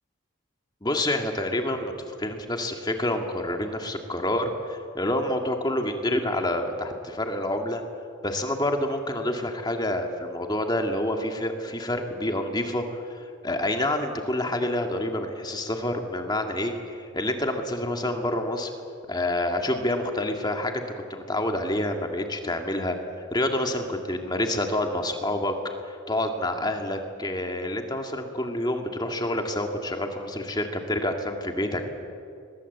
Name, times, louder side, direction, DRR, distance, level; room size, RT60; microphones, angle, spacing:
voice 1, 0.8-7.8 8.2-18.7 19.1-23.0 23.3-25.5 25.9-31.8, left 1 dB, 20° left, 4 dB, 2.0 m, -28 dB
23.0 x 20.5 x 8.1 m, 2.5 s
head